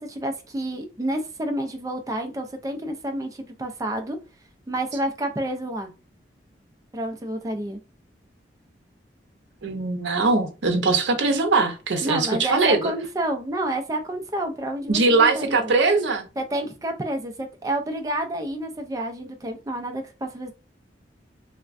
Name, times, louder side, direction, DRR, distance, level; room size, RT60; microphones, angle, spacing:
voice 1, 0.0-4.2 4.7-5.9 6.9-7.8 12.0-15.7 16.4-20.5, right 1 dB, 20° right, 0.3 m, -29 dB
voice 2, 9.6-12.9 14.9-16.3, right 3 dB, 80° right, 0.6 m, -21 dB
3.3 x 2.1 x 2.4 m
head